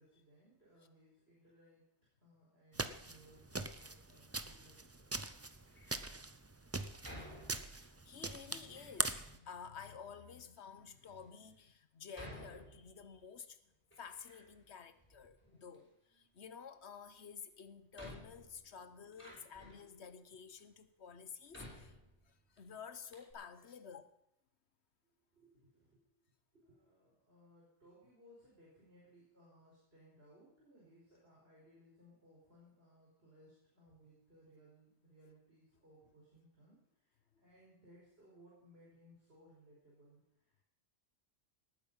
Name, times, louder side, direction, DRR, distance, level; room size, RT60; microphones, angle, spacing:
voice 1, 0.0-1.8 2.2-5.2 19.1-19.6 25.3-26.0 26.5-40.6, equal, 55° right, -6 dB, 5.3 m, -64 dB
sound 1, 2.7-9.4, right 2 dB, 20° right, 0.5 m, -42 dB
Door, 5.7-6.1 7.0-8.0 8.7-9.3 10.1-10.2 10.9-11.0 12.1-13.3 13.6-14.7 15.0-15.8 17.2-17.3 17.9-19.9 20.6-20.7 21.5-22.6 22.8-22.9 23.1-23.3, equal, 10° left, 5.4 m, -54 dB
voice 2, 7.7-13.6 14.0-22.0 22.3-24.1, left 6 dB, 65° left, 12 dB, 1.2 m, -52 dB
19.0 x 9.5 x 5.6 m, 0.81 s
omnidirectional pair, 1.2 m